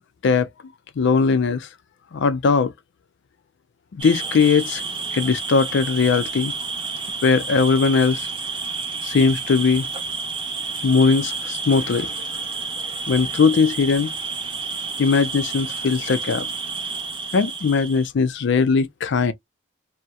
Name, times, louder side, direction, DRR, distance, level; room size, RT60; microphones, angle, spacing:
voice 1, 1.0-1.7 2.1-2.7 3.9-4.8 5.1-6.5 7.2-8.3 9.0-9.9 10.8-12.3 13.1-14.1 15.0-16.5 17.3-19.3, left 5 dB, 65° left, 0.4 m, -19 dB
sound 1, 4.0-18.1, right 4 dB, 25° right, 0.7 m, -30 dB
2.7 x 2.1 x 2.2 m
head